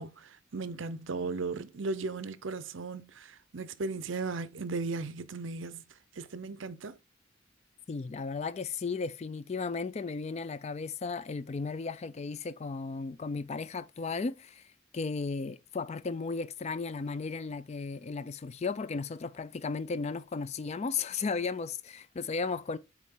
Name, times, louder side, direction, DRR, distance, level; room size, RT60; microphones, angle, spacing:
voice 1, 0.0-5.9 6.2-7.0, right 3 dB, 70° right, 0.6 m, -36 dB
voice 2, 7.9-22.8, left 4 dB, 35° left, 0.4 m, -35 dB
8.2 x 3.7 x 3.6 m
head